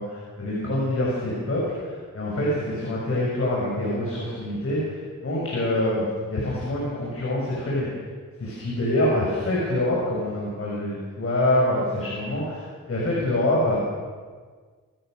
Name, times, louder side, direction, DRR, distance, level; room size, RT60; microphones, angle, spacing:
voice 1, 0.0-7.9 8.4-13.8, left 1 dB, 40° left, -5 dB, 6.5 m, -25 dB
27.0 x 15.5 x 6.6 m, 1.5 s
wide cardioid pair, 120°, 33 cm